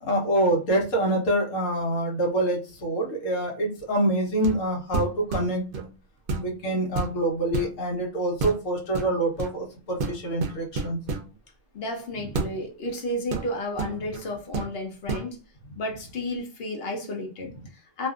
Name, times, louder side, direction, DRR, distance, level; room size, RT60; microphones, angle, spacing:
voice 1, 0.0-5.7 6.4-11.0 12.3-12.4, right 1 dB, 80° left, 1.3 m, -26 dB
sound 1, 4.4-4.7 4.9-5.9 6.3-6.6 6.9-7.7 8.4-8.6 8.9-9.6 10.0-11.3 12.3-12.5 13.3-14.2 14.5-14.7 15.1-15.3, right 4 dB, 60° right, 0.6 m, -30 dB
voice 2, 11.7-15.4 15.8-18.1, left 1 dB, 55° left, 0.8 m, -32 dB
2.6 x 2.4 x 2.3 m
omnidirectional pair, 1.3 m